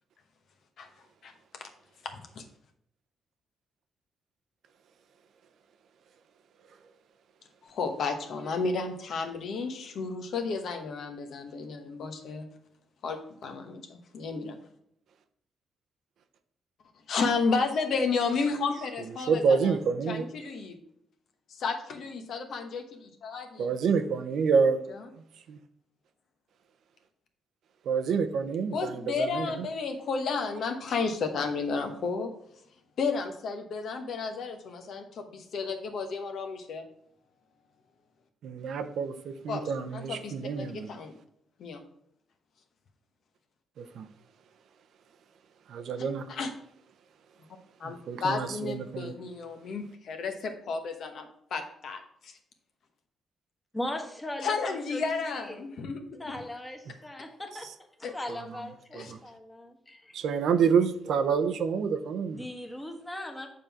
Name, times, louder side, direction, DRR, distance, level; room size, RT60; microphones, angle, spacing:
voice 1, 2.1-2.4 7.6-12.5 13.0-14.6 17.1-19.8 20.1-20.8 21.5-23.7 24.9-25.0 28.7-32.3 33.0-36.8 39.5-41.1 41.6-41.8 46.0-46.5 47.8-52.3 54.4-56.3 58.0-58.1 58.9-59.1, left 4 dB, 70° left, 6 dB, 1.0 m, -32 dB
voice 2, 19.3-20.3 23.6-24.8 25.5-25.6 27.9-29.7 38.4-40.9 43.8-44.1 45.7-46.3 47.8-49.1 58.3-58.4 58.9-59.2 60.1-62.4, right 6 dB, 75° right, 9 dB, 0.6 m, -28 dB
voice 3, 53.7-55.6 56.2-57.7 58.1-60.1 62.3-63.5, left 1 dB, 15° left, 4 dB, 1.4 m, -39 dB
6.7 x 3.7 x 5.8 m, 0.72 s
cardioid pair, 75°, 0 cm